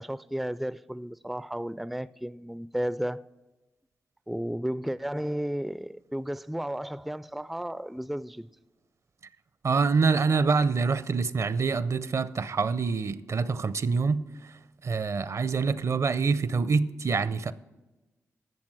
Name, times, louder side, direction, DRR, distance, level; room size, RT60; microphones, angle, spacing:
voice 1, 0.0-3.3 4.3-8.5, equal, ahead, 0.3 m, -33 dB
voice 2, 9.6-14.2 14.8-17.5, right 4 dB, 55° right, 0.6 m, -26 dB
12.0 x 7.2 x 6.1 m
supercardioid pair, 45°, 6 cm